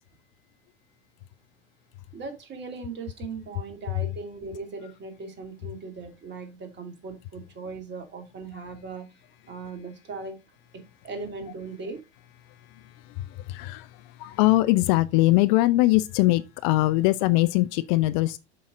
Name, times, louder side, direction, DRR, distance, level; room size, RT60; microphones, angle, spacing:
voice 1, 2.1-9.1 9.5-10.4 10.7-12.0, right 4 dB, 30° right, 2.5 m, -38 dB
voice 2, 13.1-13.9 14.2-18.4, left 18 dB, 45° left, 0.5 m, -22 dB
7.6 x 5.5 x 3.6 m
figure-of-eight pair, 85°, 34 cm